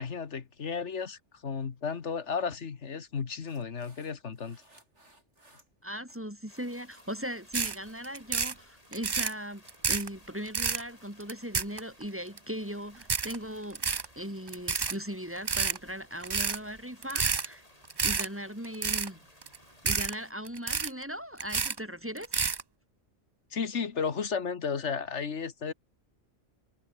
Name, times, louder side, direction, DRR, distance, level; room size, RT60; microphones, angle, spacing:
voice 1, 0.0-4.6 23.5-25.7, left 6 dB, 85° left, 1.8 m, -33 dB
sound 1, 3.5-6.2 6.6-7.2 7.5-7.8 8.4-8.6, right 1 dB, 85° right, 7.5 m, -62 dB
voice 2, 5.8-13.8 14.2-17.6 18.0-19.2 19.8-22.4, equal, 10° right, 3.6 m, -38 dB
sound 2, 6.5-20.3, left 1 dB, 30° left, 7.7 m, -58 dB
sound 3, 7.5-7.8 8.0-8.5 8.9-9.3 9.7-10.1 10.5-10.8 11.2-12.0 12.4-12.5 13.0-13.4 13.7-14.1 14.5-15.0 15.4-15.8 16.2-16.6 17.0-17.5 17.8-18.3 18.6-19.1 19.4-19.6 19.9-20.1 20.5-21.0 21.4-21.8 22.2-22.6, right 5 dB, 30° right, 0.5 m, -29 dB
omnidirectional pair, 1.2 m